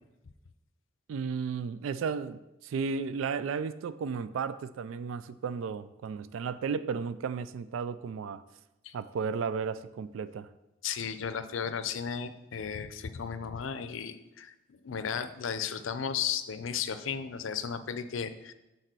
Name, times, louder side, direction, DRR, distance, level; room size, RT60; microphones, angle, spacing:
voice 1, 1.1-8.4 8.9-10.5, right 5 dB, 85° right, 15 dB, 0.3 m, -34 dB
voice 2, 10.8-18.5, left 7 dB, 80° left, 11 dB, 0.5 m, -35 dB
6.6 x 4.1 x 6.1 m, 0.97 s
head